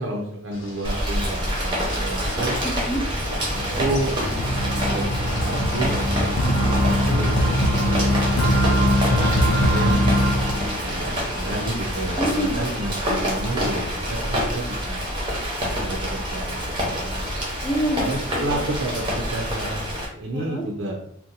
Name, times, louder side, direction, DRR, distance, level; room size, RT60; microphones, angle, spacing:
voice 1, 0.0-2.6 3.5-4.2 4.9-6.0 7.0-7.4 7.9-10.1 10.8-15.0 15.6-17.2 18.0-19.8 20.1-20.9, right 1 dB, 60° right, -1 dB, 0.5 m, -30 dB
sound 1, 0.5-12.5, equal, 60° left, 0.9 m, -39 dB
Rain, 0.8-20.0, equal, 20° right, 0.7 m, -27 dB
voice 2, 2.6-3.0 6.4-6.8 12.2-12.7 17.6-18.1 18.3-18.6 20.3-20.6, right 1 dB, 20° left, -1 dB, 0.4 m, -27 dB
sound 2, 3.4-11.2, equal, 90° left, 0.4 m, -22 dB
2.7 x 2.2 x 3.9 m, 0.72 s
head